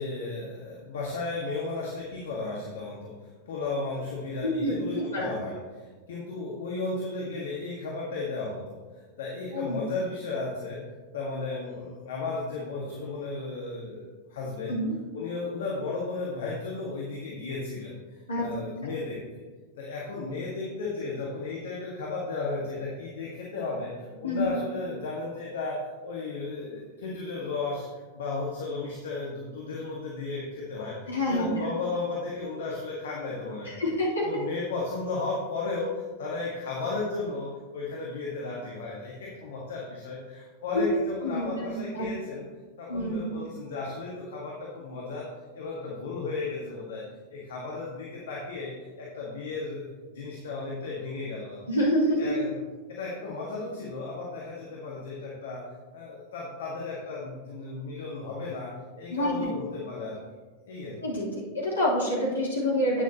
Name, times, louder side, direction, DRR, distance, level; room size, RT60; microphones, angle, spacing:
voice 1, 0.0-10.8 11.1-14.8 15.1-19.4 19.8-27.9 28.2-33.9 34.2-42.4 42.8-45.3 45.5-47.0 47.3-49.8 50.1-51.6 52.2-52.6 52.9-55.6 55.9-58.7 59.0-60.2 60.7-60.9, left 3 dB, 60° left, -4 dB, 1.6 m, -34 dB
voice 2, 4.4-5.3 9.5-9.8 14.7-14.9 18.3-18.5 24.2-24.5 31.1-31.6 33.6-34.3 40.7-40.8 41.2-42.0 42.9-43.3 51.7-52.3 59.1-59.4 61.0-63.0, left 1 dB, 75° left, -7 dB, 3.2 m, -27 dB
11.0 x 9.2 x 2.9 m, 1.4 s
figure-of-eight pair, 90°, 0 cm